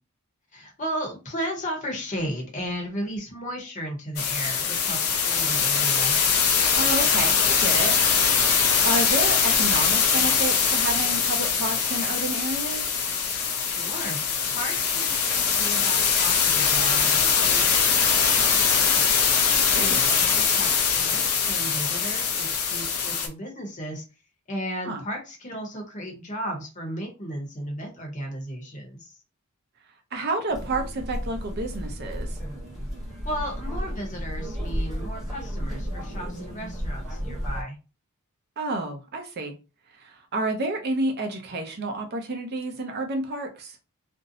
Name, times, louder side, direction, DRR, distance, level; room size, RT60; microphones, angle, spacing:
voice 1, 0.5-6.2 13.6-14.2 14.5-19.2 19.8-24.0 24.5-29.1 33.2-37.8, equal, 35° left, 0.8 m, -35 dB
sound 1, 4.2-23.3, left 6 dB, 80° left, 0.5 m, -22 dB
voice 2, 6.7-8.0 8.8-12.8 19.7-20.1 24.8-25.0 30.1-32.4 38.6-39.5 40.0-43.8, right 2 dB, 45° right, 0.5 m, -30 dB
sound 2, 30.5-37.6, equal, ahead, 0.9 m, -33 dB
2.5 x 2.0 x 2.6 m
head